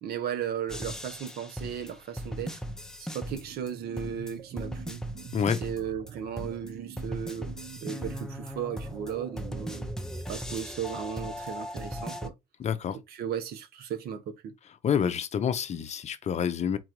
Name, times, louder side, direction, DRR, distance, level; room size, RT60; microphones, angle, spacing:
voice 1, 0.0-2.6 3.0-5.0 5.6-7.5 7.8-9.9 10.3-12.3 13.1-14.5, right 8 dB, 65° right, 0.9 m, -36 dB
sound 1, 0.7-3.7 4.0-6.1 6.4-12.3, equal, 5° left, 0.6 m, -38 dB
sound 2, 3.1-10.2, right 10 dB, 45° right, 0.6 m, -47 dB
voice 2, 12.6-13.0 14.8-16.8, left 7 dB, 40° left, 0.6 m, -28 dB
3.9 x 2.5 x 4.5 m
cardioid pair, 110°, 17 cm